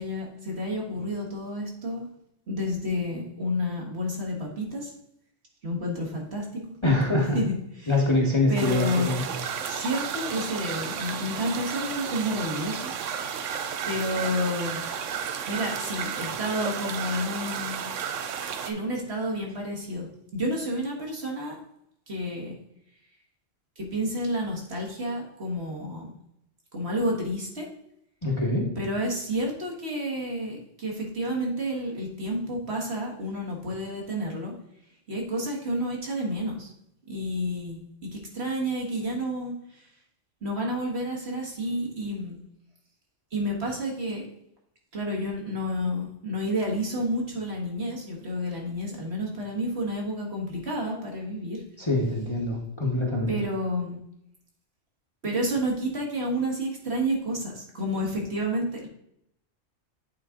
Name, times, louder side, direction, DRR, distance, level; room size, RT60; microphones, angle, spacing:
voice 1, 0.0-2.1 2.5-4.9 5.6-6.6 7.3-8.0 8.5-9.1 9.6-12.9 13.9-14.8 15.5-17.8 18.7-21.6 22.1-22.5 23.8-26.1 26.7-27.7 28.8-34.5 35.1-36.7 37.1-39.9 40.4-42.4 43.3-44.3 44.9-51.6 53.3-54.0 55.2-58.9, equal, 60° right, -1 dB, 1.8 m, -30 dB
voice 2, 6.8-7.4 7.9-9.2 28.2-28.7 51.8-53.3, left 2 dB, 25° left, -3 dB, 1.1 m, -24 dB
sound 1, 8.6-18.7, right 7 dB, 80° right, 1.0 m, -33 dB
8.7 x 4.1 x 3.7 m, 0.77 s
omnidirectional pair, 1.3 m